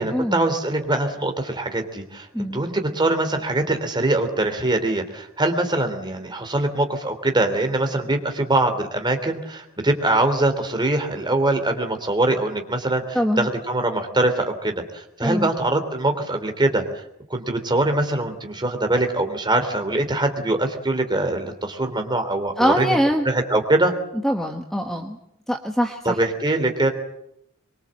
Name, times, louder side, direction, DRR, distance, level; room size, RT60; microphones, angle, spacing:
voice 1, 0.0-16.8 17.3-23.0 23.2-23.9 26.0-26.9, right 2 dB, 20° right, 6 dB, 3.2 m, -23 dB
voice 2, 13.1-13.5 15.2-15.5 22.6-23.3 24.2-25.2 25.5-26.2, equal, ahead, 3 dB, 1.4 m, -23 dB
23.5 x 23.5 x 7.8 m, 0.77 s
head